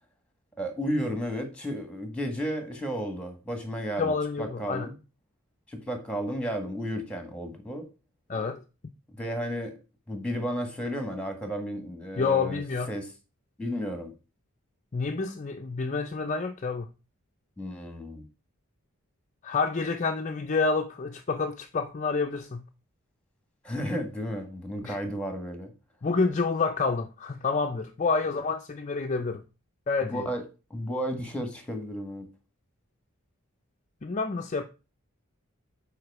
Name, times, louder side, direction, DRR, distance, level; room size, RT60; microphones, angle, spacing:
voice 1, 0.6-4.9 5.7-7.9 9.2-9.8 10.1-12.6 12.9-13.1 13.6-14.1 17.6-18.2 23.6-25.7 30.0-30.4 30.7-32.3, equal, 5° left, 1.6 m, -33 dB
voice 2, 4.0-4.9 8.3-8.6 12.2-12.9 14.9-16.9 19.4-22.6 24.8-25.0 26.0-29.4 29.9-30.3 34.0-34.6, left 4 dB, 35° left, 0.5 m, -28 dB
7.9 x 5.0 x 4.7 m
head